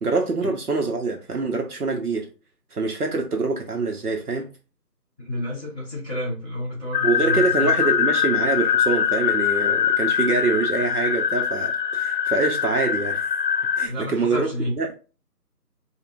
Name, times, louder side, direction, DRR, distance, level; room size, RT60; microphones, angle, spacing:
voice 1, 0.0-2.3 2.7-4.5 7.0-13.3 13.8-14.9, right 3 dB, 65° right, 0.8 m, -25 dB
voice 2, 5.2-7.9 13.8-14.7, left 1 dB, 10° right, 1.9 m, -30 dB
sound 1, 6.9-13.9, left 8 dB, 85° left, 0.6 m, -23 dB
5.1 x 2.1 x 2.5 m
figure-of-eight pair, 170°, 49 cm